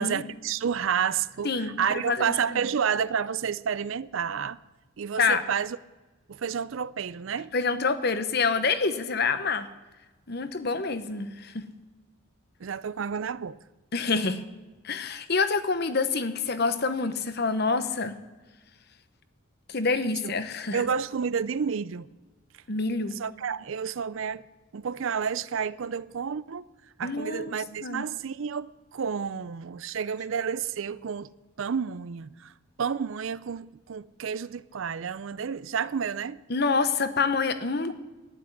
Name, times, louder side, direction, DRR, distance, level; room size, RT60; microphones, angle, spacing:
voice 1, 0.0-4.6 5.0-5.8 6.3-7.5 12.6-13.6 20.2-20.3 20.7-22.1 23.1-24.4 24.7-26.7 27.0-31.3 31.6-32.5 32.8-36.4, right 7 dB, 65° right, 0.4 m, -30 dB
voice 2, 1.4-2.6 5.2-5.4 7.5-9.7 10.3-11.7 13.9-14.4 14.8-18.2 19.7-20.8 22.7-23.2 27.0-27.6 27.8-28.1 36.5-37.9, left 4 dB, 45° left, 0.9 m, -27 dB
12.0 x 10.0 x 9.7 m
head